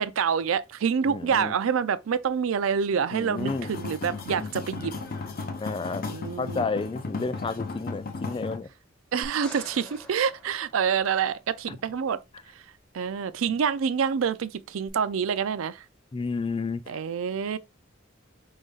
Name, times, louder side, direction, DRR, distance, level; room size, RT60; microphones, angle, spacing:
voice 1, 0.0-5.0 6.1-6.7 9.1-12.2 12.9-15.8 16.9-17.6, right 7 dB, 90° right, 0.4 m, -27 dB
voice 2, 1.1-1.5 3.1-3.7 5.6-6.1 6.4-8.7 11.7-11.8 16.1-17.0, left 4 dB, 25° left, 0.4 m, -31 dB
sound 1, 3.3-8.6, left 3 dB, 50° left, 0.8 m, -35 dB
sound 2, 9.2-11.5 14.9-15.0, equal, 5° left, 1.1 m, -46 dB
5.1 x 3.9 x 2.4 m
head